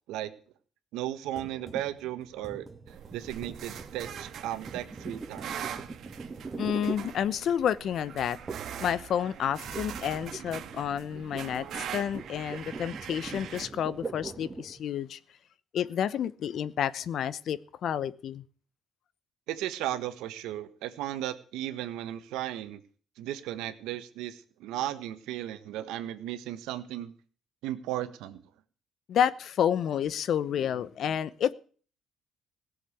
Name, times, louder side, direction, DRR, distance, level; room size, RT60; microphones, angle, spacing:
voice 1, 0.9-5.6 19.5-22.8 23.2-27.1 27.6-28.4, right 13 dB, 90° right, 1.5 m, -35 dB
sound 1, 1.4-7.7 8.5-8.8 9.1-14.8, right 3 dB, 25° right, 2.3 m, -42 dB
sound 2, 2.9-13.7, right 9 dB, 65° right, 1.8 m, -42 dB
voice 2, 6.6-8.4 8.8-15.2 15.7-18.4 29.1-31.5, left 9 dB, 60° left, 0.8 m, -30 dB
17.0 x 7.3 x 8.4 m
cardioid pair, 100°, 0 cm